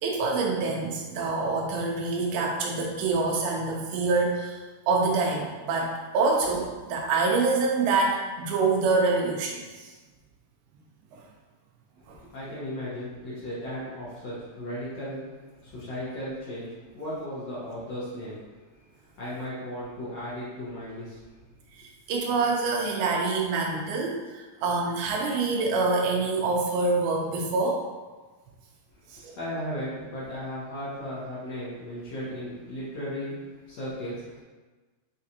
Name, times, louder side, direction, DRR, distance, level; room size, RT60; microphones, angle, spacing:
voice 1, 0.0-4.6 4.9-9.9 11.1-11.2 12.1-12.2 22.1-27.8 29.2-29.3, right 3 dB, 90° right, 0 dB, 2.5 m, -26 dB
voice 2, 12.3-15.3 15.6-18.4 18.7-21.2 29.1-33.4 33.7-34.4, equal, 70° left, -10 dB, 1.5 m, -36 dB
6.2 x 2.4 x 2.8 m, 1.3 s
omnidirectional pair, 4.3 m